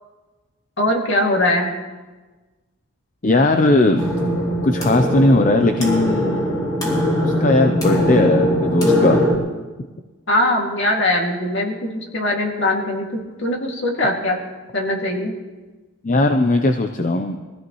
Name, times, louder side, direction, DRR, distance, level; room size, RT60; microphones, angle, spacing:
voice 1, 0.8-1.7 10.3-14.4 14.7-15.3, left 1 dB, 55° left, 0 dB, 2.3 m, -21 dB
voice 2, 3.2-4.1 4.6-6.4 7.2-9.2 16.0-17.4, left 2 dB, 35° left, 5 dB, 0.6 m, -18 dB
sound 1, 4.0-9.4, equal, 15° left, 2.7 m, -20 dB
23.0 x 15.5 x 3.1 m, 1.2 s
head